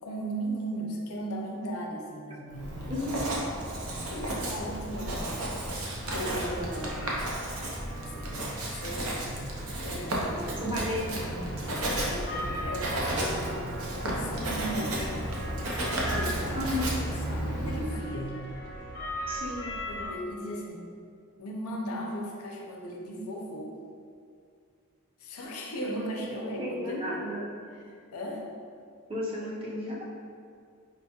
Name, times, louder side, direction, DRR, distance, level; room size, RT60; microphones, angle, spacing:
voice 1, 0.0-3.1 4.1-5.4 6.1-7.2 7.9-10.8 11.1-13.5 14.0-15.4 15.9-18.4 19.9-20.9 21.4-23.8 25.2-27.3 27.7-27.8 28.1-28.4, right 1 dB, 85° left, 0 dB, 0.5 m, -37 dB
Writing, 2.5-17.9, right 1 dB, 80° right, 0.6 m, -33 dB
voice 2, 2.9-3.3 10.6-11.4 16.5-16.9 19.3-19.8 25.8-25.9 26.4-27.5 29.1-30.0, left 1 dB, 25° right, -6 dB, 0.6 m, -33 dB
sound 1, 6.0-20.1, equal, 50° left, 0.7 m, -40 dB
sound 2, 10.5-12.6 13.8-16.5 17.0-19.2, equal, 55° right, 1.0 m, -45 dB
4.4 x 2.3 x 2.8 m, 2.3 s
head